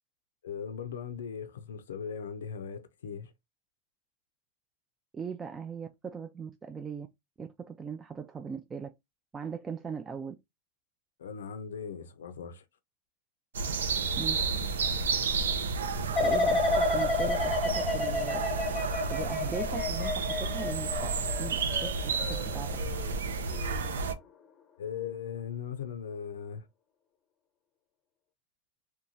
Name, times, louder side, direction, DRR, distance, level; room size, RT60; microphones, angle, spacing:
voice 1, 0.4-3.3 11.2-12.6 24.8-26.7, left 7 dB, 85° left, 0.4 m, -39 dB
voice 2, 5.1-7.1 7.4-8.9 9.3-10.3 14.2-14.4 16.2-18.4 19.1-22.8, right 6 dB, 20° right, 0.4 m, -39 dB
sound 1, 13.5-24.1, right 4 dB, 90° right, 0.4 m, -31 dB
sound 2, 16.2-23.1 23.5-23.9, left 3 dB, 25° left, 0.6 m, -31 dB
2.8 x 2.3 x 2.5 m
hypercardioid pair, 105°, 0 cm